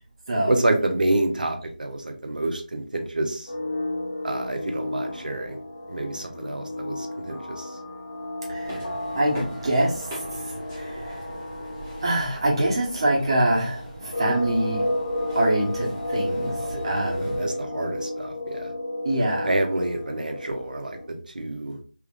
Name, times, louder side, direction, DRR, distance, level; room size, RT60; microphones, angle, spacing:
voice 1, 0.5-3.5 4.2-5.6 5.9-7.7 16.6-16.9 17.2-18.7 19.5-21.8, right 2 dB, 60° right, 4 dB, 0.7 m, -28 dB
sound 1, 3.5-21.1, left 1 dB, 55° left, 1.2 m, -33 dB
voice 2, 8.5-8.8 9.1-11.2 12.0-14.9 15.3-17.4 19.0-19.5, right 1 dB, 35° right, -3 dB, 1.3 m, -25 dB
sound 2, 8.6-17.5, right 2 dB, 15° right, 0.9 m, -40 dB
3.5 x 3.4 x 2.5 m, 0.39 s
figure-of-eight pair, 165°, 5 cm